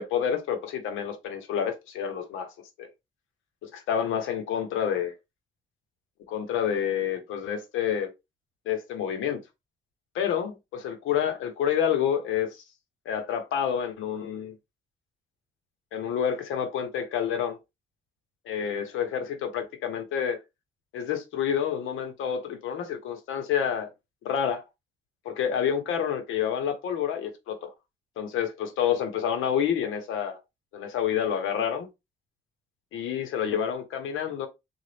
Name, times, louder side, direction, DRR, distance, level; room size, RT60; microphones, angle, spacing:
voice 1, 0.0-2.5 2.8-2.9 3.6-5.1 6.3-8.1 8.7-9.4 10.1-12.6 13.0-14.5 15.9-17.6 18.5-20.4 20.9-23.9 24.2-24.6 25.2-27.7 28.2-30.4 30.7-31.9 32.9-34.5, left 8 dB, 85° left, 0.9 m, -28 dB
3.8 x 2.4 x 3.3 m
cardioid pair, 90°, 20 cm